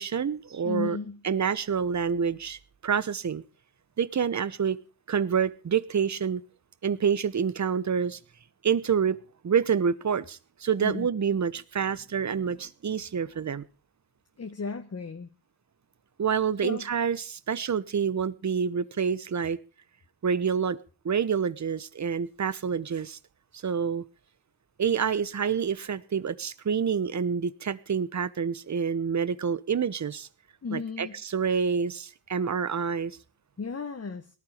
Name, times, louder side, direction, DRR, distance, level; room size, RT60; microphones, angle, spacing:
voice 1, 0.0-1.0 1.2-3.4 4.0-4.8 5.1-6.4 6.8-8.2 8.6-9.2 9.4-13.6 16.2-19.6 20.2-20.8 21.0-23.2 23.5-24.0 24.8-30.3 30.7-33.1, right 7 dB, 40° right, 17 dB, 1.1 m, -27 dB
voice 2, 0.6-1.2 10.8-11.1 14.4-15.3 16.6-16.9 30.6-31.2 33.6-34.3, left 4 dB, 35° left, 6 dB, 1.6 m, -34 dB
18.5 x 12.0 x 5.1 m, 0.36 s
cardioid pair, 80°, 44 cm